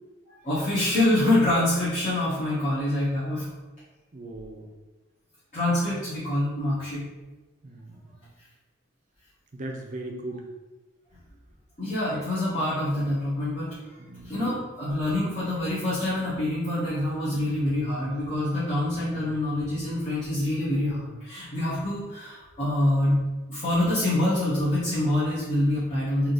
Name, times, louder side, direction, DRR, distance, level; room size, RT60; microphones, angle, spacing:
voice 1, 0.4-3.5 5.5-7.0 11.8-13.7 14.2-23.2 23.5-26.3, left 1 dB, 35° left, -12 dB, 1.3 m, -26 dB
voice 2, 4.1-4.6 7.6-8.3 9.5-10.5 14.0-14.4 19.2-19.3, right 1 dB, 40° right, 2 dB, 0.5 m, -38 dB
3.6 x 2.9 x 4.0 m, 1.2 s
head